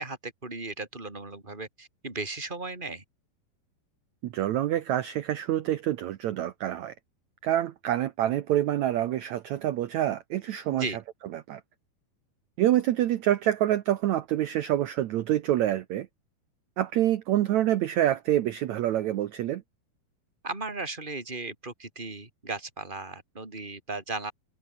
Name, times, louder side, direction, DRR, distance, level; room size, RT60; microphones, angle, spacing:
voice 1, 0.0-3.0 10.7-11.0 20.4-24.3, right 3 dB, 10° right, 4.7 m, -36 dB
voice 2, 4.2-6.9 7.4-10.8 11.3-11.6 12.6-16.1 16.8-19.6, right 12 dB, 80° right, 1.6 m, -26 dB
omnidirectional pair, 4.5 m